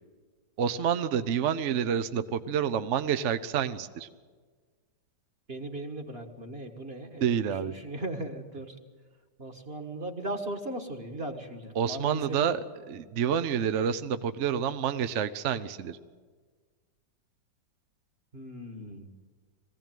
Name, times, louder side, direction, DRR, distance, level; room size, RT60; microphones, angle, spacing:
voice 1, 0.6-4.1 7.2-7.8 11.7-16.0, right 8 dB, 55° right, 11 dB, 0.9 m, -28 dB
voice 2, 5.5-8.7 9.4-12.4 18.3-19.1, right 1 dB, 35° right, 4 dB, 1.7 m, -38 dB
21.0 x 16.0 x 9.2 m, 1.5 s
omnidirectional pair, 2.0 m